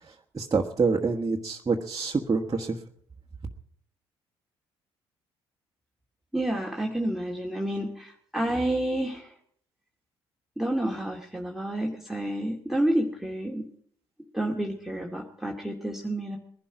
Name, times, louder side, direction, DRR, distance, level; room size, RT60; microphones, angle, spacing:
voice 1, 0.3-2.8, right 4 dB, 30° right, -1 dB, 1.5 m, -26 dB
voice 2, 6.3-9.3 10.6-13.7 14.3-16.4, right 1 dB, ahead, -2 dB, 2.2 m, -29 dB
20.5 x 11.5 x 5.0 m, 0.62 s
hypercardioid pair, 50°, 13 cm